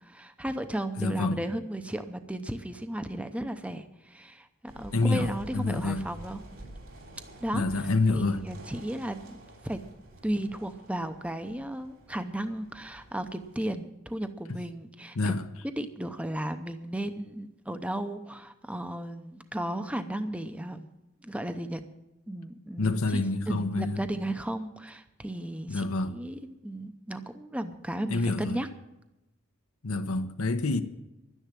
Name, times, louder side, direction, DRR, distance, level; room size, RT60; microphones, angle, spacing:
voice 1, 0.0-6.4 7.4-7.8 8.1-9.2 9.6-9.8 10.2-15.3 15.8-20.9 21.2-21.8 22.3-28.7, right 1 dB, 5° right, 0.6 m, -35 dB
voice 2, 1.0-1.4 4.9-6.0 7.5-8.4 14.5-14.6 15.1-15.4 22.8-24.0 25.7-26.1 28.1-28.6 29.8-30.8, left 2 dB, 85° left, 0.9 m, -27 dB
sound 1, 4.7-13.7, right 1 dB, 60° right, 3.2 m, -49 dB
12.0 x 10.0 x 7.5 m
head